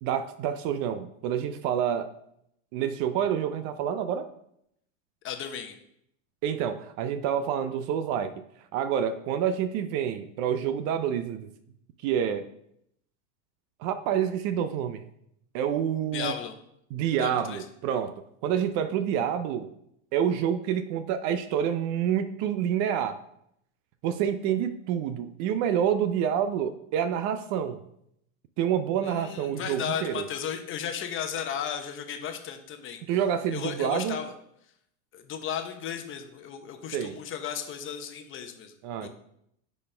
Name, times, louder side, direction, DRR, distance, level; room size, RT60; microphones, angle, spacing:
voice 1, 0.0-2.1 2.7-4.3 6.4-8.3 8.7-11.5 12.0-12.5 13.8-15.0 15.5-16.3 16.9-19.7 20.1-23.2 24.0-27.8 28.6-30.2 33.1-34.2 36.9-37.2 38.8-39.1, right 9 dB, 45° right, 11 dB, 0.5 m, -28 dB
voice 2, 5.2-5.7 16.1-16.5 17.2-17.6 29.0-33.0 33.5-34.3 35.1-38.7 39.0-39.1, left 8 dB, 30° left, 6 dB, 0.9 m, -35 dB
9.8 x 4.3 x 3.3 m, 0.75 s
supercardioid pair, 125°, 40 cm